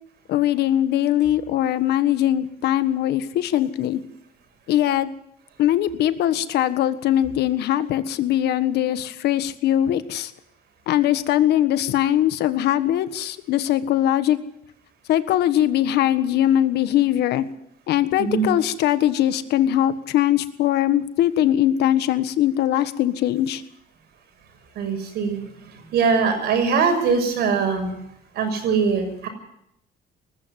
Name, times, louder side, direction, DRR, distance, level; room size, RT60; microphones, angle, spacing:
voice 1, 0.3-4.0 4.7-5.1 5.6-10.3 10.9-14.4 15.1-17.4 17.9-23.6, left 12 dB, 75° left, 12 dB, 1.5 m, -21 dB
voice 2, 18.2-18.5 24.7-25.4 25.9-27.9 28.3-29.3, right 5 dB, 75° right, 5 dB, 6.6 m, -21 dB
20.0 x 14.5 x 9.3 m, 0.77 s
cardioid pair, 110°, 17 cm